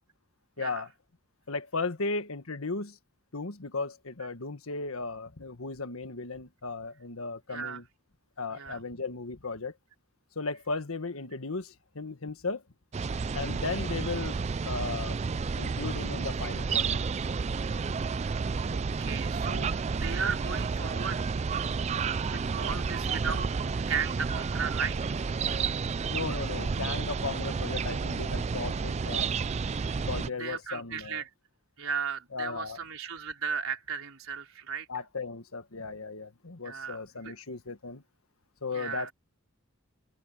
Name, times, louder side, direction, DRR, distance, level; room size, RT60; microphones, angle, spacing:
voice 1, 0.6-0.9 1.5-3.0 3.3-7.8 8.4-9.7 10.3-12.6 13.3-14.4 14.6-15.2 15.6-17.0 26.1-29.4 30.0-31.2 32.3-32.8 34.9-38.0 38.6-39.1, left 3 dB, 90° left, 1.5 m, -36 dB
voice 2, 7.5-7.8 8.5-8.8 18.7-21.3 22.2-25.1 29.5-29.9 30.4-31.3 31.8-34.9 36.6-37.3 38.7-39.1, right 6 dB, 90° right, 3.8 m, -36 dB
sound 1, 12.9-30.3, right 5 dB, 30° right, 0.4 m, -31 dB
open air
head